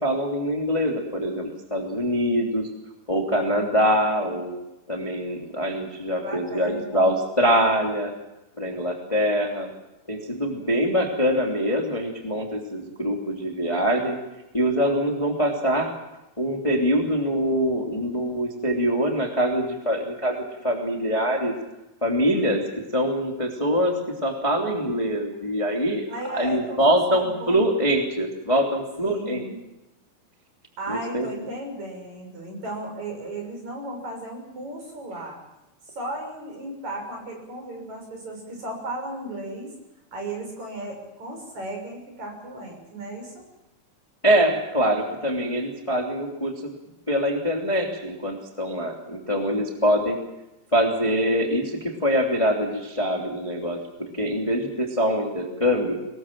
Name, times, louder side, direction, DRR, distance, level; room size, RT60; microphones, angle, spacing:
voice 1, 0.0-2.7 3.1-4.5 4.9-8.1 8.6-9.7 10.1-14.1 14.5-15.9 16.4-21.5 22.0-22.6 22.9-26.0 26.3-29.4 30.9-31.3 44.2-46.7 47.1-50.2 50.7-56.0, equal, 10° left, 2 dB, 2.6 m, -24 dB
voice 2, 6.2-7.1 10.5-10.7 26.1-27.6 29.0-29.6 30.8-35.4 35.8-39.7 40.1-43.4, right 1 dB, 50° right, 2 dB, 8.0 m, -35 dB
25.0 x 20.0 x 7.6 m, 0.98 s
omnidirectional pair, 4.2 m